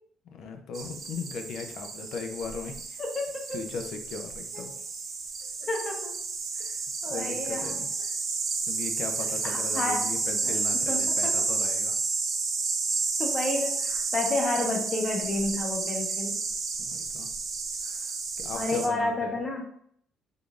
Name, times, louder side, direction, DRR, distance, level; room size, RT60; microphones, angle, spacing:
voice 1, 0.3-3.0 3.5-4.7 6.5-7.9 8.7-12.0 16.8-17.3 17.8-19.3, left 5 dB, 70° left, 5 dB, 0.6 m, -38 dB
sound 1, 0.7-18.9, right 4 dB, 50° right, 0.7 m, -31 dB
voice 2, 3.1-3.6 4.5-4.7 5.6-6.1 7.0-7.8 9.4-10.0 10.4-11.3 13.2-16.4 18.5-19.6, left 2 dB, 30° left, 0 dB, 1.0 m, -30 dB
3.8 x 3.4 x 2.4 m, 0.67 s
cardioid pair, 100°, 0 cm